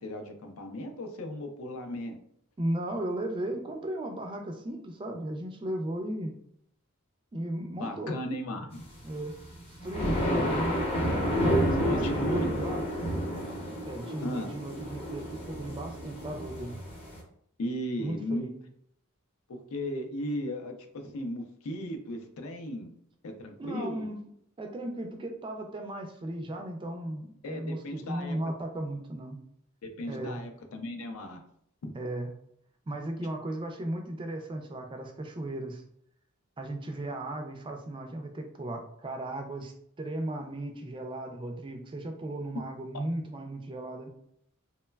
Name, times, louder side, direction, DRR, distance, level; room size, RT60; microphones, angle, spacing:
voice 1, 0.0-2.2 7.8-8.8 10.2-10.5 11.7-12.5 14.2-14.5 17.6-18.4 19.5-22.9 23.2-24.1 27.4-28.4 29.8-31.4 31.8-31.9, equal, 75° left, 4 dB, 0.5 m, -36 dB
voice 2, 2.6-6.3 7.3-8.2 9.0-9.3 9.7-10.7 11.0-11.3 11.8-12.0 12.3-12.8 13.9-16.7 18.0-18.5 23.6-24.2 24.6-29.4 30.1-30.4 31.9-32.3 32.9-35.8 36.6-44.1, right 1 dB, 25° right, 4 dB, 0.3 m, -36 dB
sound 1, 9.2-17.2, equal, 25° left, 0.7 m, -30 dB
3.0 x 2.1 x 2.2 m, 0.70 s
head